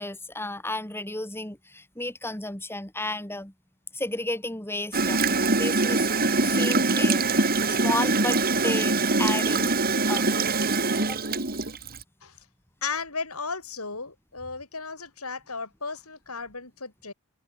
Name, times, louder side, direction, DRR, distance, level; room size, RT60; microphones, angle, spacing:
voice 1, 0.0-3.5 3.9-5.2 5.5-6.1 6.3-9.7 10.1-10.3 11.0-11.2, left 2 dB, 10° left, 4.6 m, -33 dB
Gurgling / Toilet flush, 4.9-12.0, right 3 dB, 45° right, 4.1 m, -23 dB
voice 2, 12.8-17.1, left 4 dB, 90° left, 8.0 m, -35 dB
open air
head